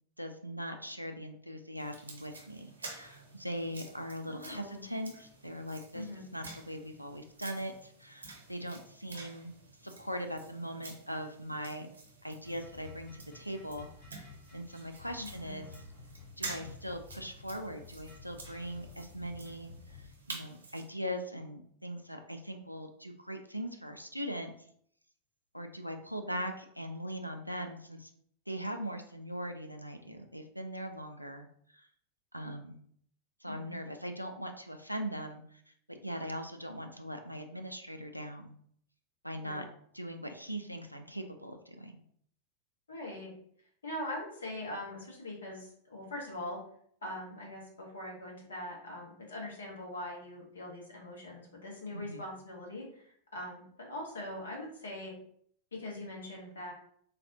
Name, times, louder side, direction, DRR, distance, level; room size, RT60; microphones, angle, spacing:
voice 1, 0.2-6.1 6.3-9.6 9.8-11.9 12.2-15.7 16.4-24.5 25.5-28.1 28.5-31.5 31.7-31.9 32.3-32.8 33.4-35.6 35.9-38.6 39.2-39.6 39.9-41.9 51.9-52.2, equal, 90° right, 5 dB, 0.3 m, -40 dB
sound 1, 1.8-20.9, right 3 dB, 70° right, 0.8 m, -50 dB
voice 2, 4.3-4.8 5.9-6.2 15.2-15.6 26.3-26.4 33.5-33.8 39.4-39.6 42.9-43.3 43.8-46.6 47.0-55.1 55.7-56.7, left 1 dB, 70° left, -1 dB, 1.0 m, -42 dB
sound 2, 12.4-20.1, left 4 dB, 40° left, 1.4 m, -52 dB
3.9 x 2.4 x 2.7 m, 0.65 s
figure-of-eight pair, 90°, 0 cm